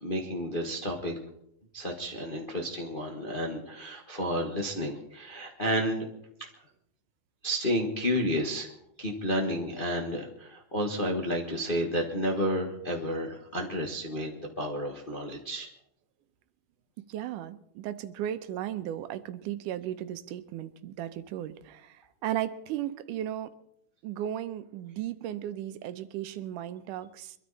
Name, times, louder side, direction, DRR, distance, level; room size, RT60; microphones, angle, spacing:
voice 1, 0.0-1.2 1.7-6.1 6.4-6.5 7.4-8.7 9.0-15.7, equal, 35° left, 1 dB, 0.8 m, -31 dB
voice 2, 17.1-21.9 22.2-23.5 24.0-27.3, right 11 dB, 85° right, 12 dB, 2.3 m, -35 dB
23.5 x 13.0 x 4.1 m, 0.75 s
omnidirectional pair, 3.6 m